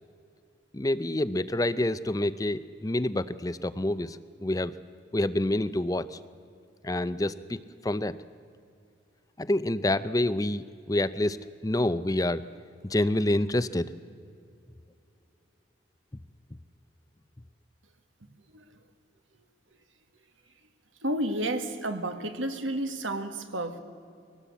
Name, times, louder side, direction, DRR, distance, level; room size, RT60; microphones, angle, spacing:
voice 1, 0.7-4.7 5.1-6.2 6.8-8.2 9.4-12.4 12.9-13.9, left 1 dB, 20° left, 14 dB, 0.5 m, -27 dB
voice 2, 21.0-23.8, right 1 dB, 80° right, 8 dB, 1.7 m, -31 dB
22.5 x 18.5 x 8.3 m, 2.4 s
head